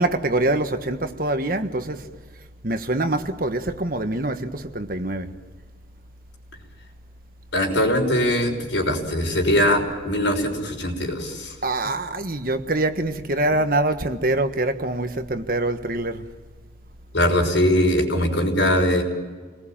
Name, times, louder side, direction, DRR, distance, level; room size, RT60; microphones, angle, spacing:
voice 1, 0.0-2.1 2.6-5.3 11.6-16.2, right 2 dB, 50° right, 1.5 m, -24 dB
voice 2, 7.5-11.5 17.1-19.0, equal, 80° left, 6.0 m, -21 dB
29.0 x 19.5 x 9.0 m
head